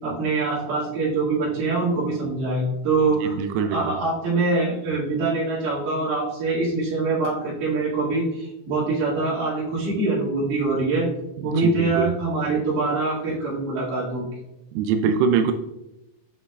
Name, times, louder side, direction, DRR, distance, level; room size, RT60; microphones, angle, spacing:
voice 1, 0.0-3.4 3.7-11.1 11.4-14.2, right 3 dB, 65° right, -10 dB, 3.8 m, -24 dB
voice 2, 3.2-3.9 11.4-12.1 14.7-15.5, right 6 dB, 85° right, 6 dB, 2.3 m, -23 dB
7.8 x 6.0 x 2.4 m, 0.92 s
omnidirectional pair, 4.0 m